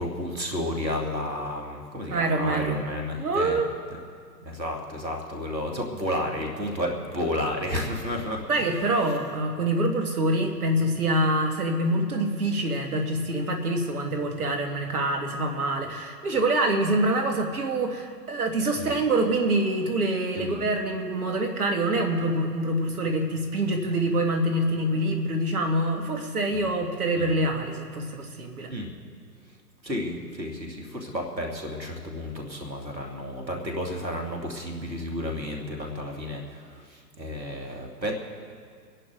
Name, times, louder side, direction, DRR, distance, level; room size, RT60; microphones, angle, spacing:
voice 1, 0.0-3.6 4.4-8.8 18.8-18.9 20.4-20.6 26.5-26.6 27.2-27.5 28.7-28.9 29.8-38.1, left 1 dB, 80° right, 1 dB, 2.6 m, -32 dB
voice 2, 2.1-2.8 3.2-3.7 8.5-28.7, right 1 dB, 60° right, 3 dB, 2.0 m, -25 dB
27.5 x 11.0 x 3.8 m, 2.1 s
figure-of-eight pair, 120°, 50 cm